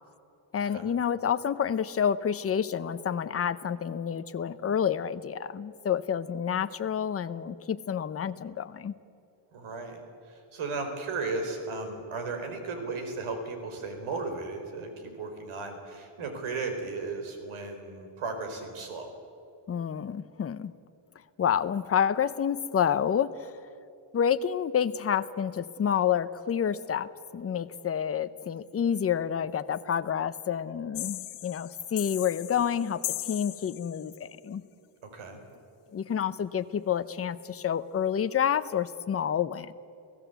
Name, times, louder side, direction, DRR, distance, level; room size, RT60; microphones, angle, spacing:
voice 1, 0.5-8.9 19.7-20.7 21.4-23.5 24.1-34.6 35.9-39.7, left 8 dB, 30° left, 12 dB, 0.7 m, -29 dB
voice 2, 9.5-19.1 35.0-35.4, right 3 dB, 75° right, 6 dB, 4.4 m, -35 dB
sound 1, 30.9-34.2, left 15 dB, 90° left, 1.3 m, -38 dB
29.5 x 17.0 x 8.1 m, 2.7 s
cardioid pair, 165°, 50 cm